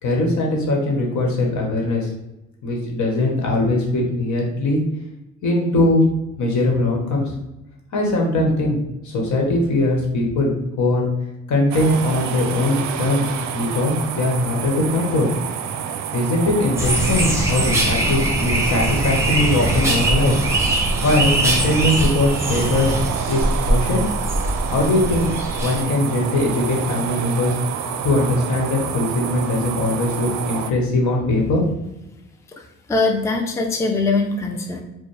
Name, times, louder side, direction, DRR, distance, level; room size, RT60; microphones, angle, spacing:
voice 1, 0.0-2.1 2.6-4.8 5.4-6.0 6.4-7.3 7.9-8.8 9.0-11.1 11.5-15.3 16.1-20.4 21.0-23.0 23.3-24.0 24.7-25.3 25.6-27.5 28.0-31.6, left 2 dB, 70° left, 0 dB, 1.1 m, -20 dB
sound 1, 11.7-30.7, right 8 dB, 65° right, 0.4 m, -28 dB
sound 2, 16.8-25.8, right 1 dB, 10° right, 0.9 m, -22 dB
voice 2, 32.5-34.8, left 3 dB, 10° left, 3 dB, 0.4 m, -22 dB
4.3 x 2.1 x 3.2 m, 0.92 s
cardioid pair, 90°, 30 cm